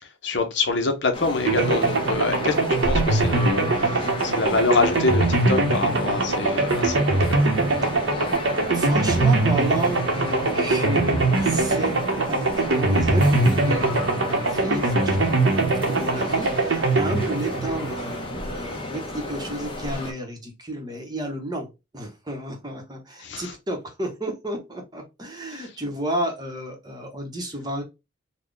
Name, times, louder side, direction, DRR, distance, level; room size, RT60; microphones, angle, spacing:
voice 1, 0.2-7.5 23.2-23.5 25.5-25.6, left 3 dB, 60° left, 0.8 m, -26 dB
sound 1, 1.1-20.1, left 1 dB, 25° left, 0.8 m, -33 dB
sound 2, 1.4-18.4, right 2 dB, 70° right, 0.9 m, -22 dB
voice 2, 8.7-12.0 12.3-27.8, right 1 dB, 20° right, 0.9 m, -32 dB
4.0 x 2.2 x 3.2 m
head